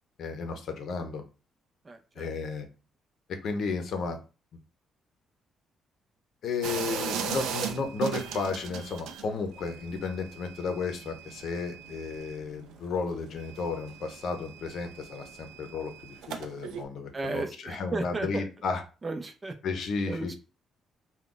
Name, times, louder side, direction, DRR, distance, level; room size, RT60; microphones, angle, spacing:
voice 1, 0.2-1.2 2.2-2.7 3.4-4.2 6.4-18.8 19.6-20.3, left 4 dB, 65° left, 6 dB, 0.6 m, -33 dB
voice 2, 1.8-2.3 17.1-18.5 19.0-19.5 20.1-20.3, right 3 dB, 30° right, 5 dB, 0.6 m, -34 dB
sound 1, 6.6-9.3 9.6-12.8 13.0-16.8, right 6 dB, 85° right, 0.4 m, -38 dB
2.4 x 2.3 x 3.7 m, 0.33 s
cardioid pair, 90°, 0 cm